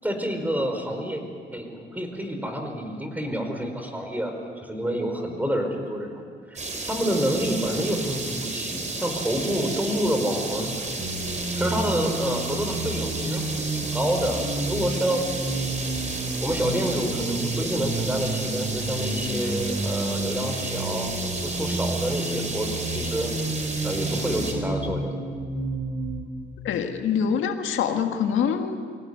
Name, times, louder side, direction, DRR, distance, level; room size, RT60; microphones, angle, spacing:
voice 1, 0.0-1.2 1.5-4.3 4.6-6.6 6.9-10.7 11.5-15.8 16.4-23.3 23.8-25.2, equal, 10° right, 4 dB, 4.8 m, -28 dB
sound 1, 6.6-24.5, right 3 dB, 35° right, 4.3 m, -32 dB
sound 2, 11.0-26.3, right 2 dB, 60° right, 6.1 m, -31 dB
voice 2, 26.6-28.8, left 7 dB, 80° left, 5 dB, 1.7 m, -25 dB
24.5 x 17.0 x 9.5 m, 2.1 s
cardioid pair, 90°, 20 cm